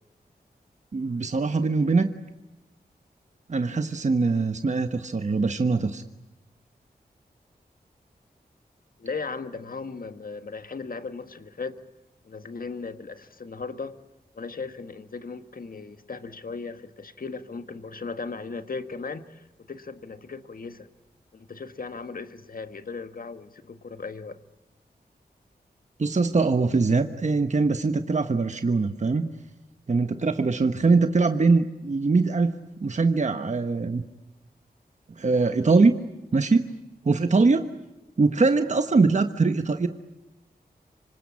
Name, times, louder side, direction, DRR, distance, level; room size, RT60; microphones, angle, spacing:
voice 1, 0.9-2.1 3.5-6.0 26.0-29.3 29.9-32.5 32.8-34.0 35.2-35.9 36.3-36.7 37.0-37.7 38.2-39.9, right 3 dB, 45° right, 8 dB, 1.2 m, -22 dB
voice 2, 9.0-11.8 12.2-14.0 14.3-20.9 21.3-24.4, left 4 dB, 60° left, 10 dB, 1.6 m, -37 dB
26.5 x 25.5 x 8.6 m, 1.0 s
wide cardioid pair, 85°, 17 cm